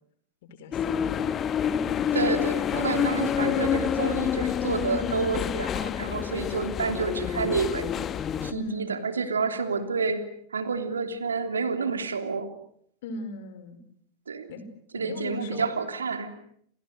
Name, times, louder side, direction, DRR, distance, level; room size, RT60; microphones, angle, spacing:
voice 1, 0.4-1.2 8.5-9.1 13.0-13.8 14.5-14.7 14.9-15.7, left 2 dB, 55° left, 11 dB, 4.9 m, -39 dB
sound 1, 0.7-8.5, left 8 dB, 25° left, 1.5 m, -28 dB
voice 2, 2.1-7.8 8.4-10.2 10.5-12.5 14.3-14.5 14.9-16.3, right 5 dB, 70° right, 8 dB, 3.2 m, -29 dB
30.0 x 28.5 x 6.7 m, 0.67 s
figure-of-eight pair, 90°, 0 cm